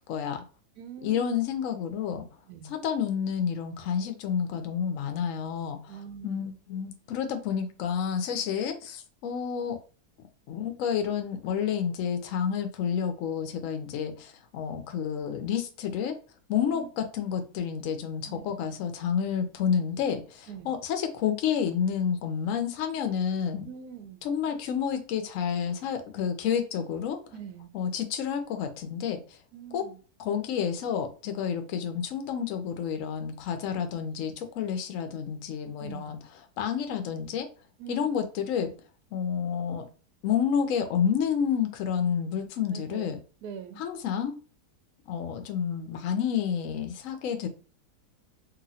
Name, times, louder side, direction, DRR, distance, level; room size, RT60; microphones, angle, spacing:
voice 1, 0.1-0.4 1.0-2.3 2.6-6.0 6.2-9.8 10.5-16.1 16.5-23.7 24.2-27.2 27.7-29.4 29.7-29.8 30.2-36.2 36.6-37.5 37.9-38.7 39.1-39.9 40.2-43.2 43.8-44.4 45.1-47.5, left 8 dB, 65° left, 6 dB, 0.8 m, -29 dB
voice 2, 0.8-1.4 2.5-2.7 5.9-6.4 16.5-16.9 18.3-18.6 20.5-20.7 23.7-24.2 27.3-27.7 29.5-30.0 35.8-36.2 37.8-38.1 42.7-43.1 43.4-43.8, right 8 dB, 75° right, 7 dB, 1.1 m, -43 dB
3.0 x 2.5 x 2.7 m, 0.37 s
omnidirectional pair, 1.8 m